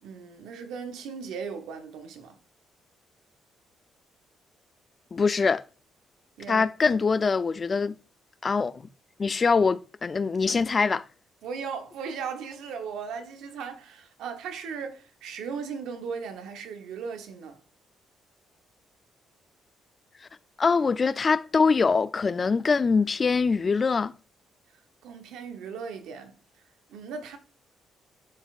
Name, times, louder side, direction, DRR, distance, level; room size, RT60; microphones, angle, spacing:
voice 1, 0.0-2.4 6.4-6.6 11.4-17.6 25.0-26.4 26.9-27.4, right 6 dB, 90° right, 0.9 m, -37 dB
voice 2, 5.1-5.6 6.5-8.0 8.4-8.7 9.2-11.0 20.6-24.1, left 4 dB, 35° left, 0.4 m, -23 dB
10.5 x 4.1 x 2.4 m
cardioid pair, 90°, 0 cm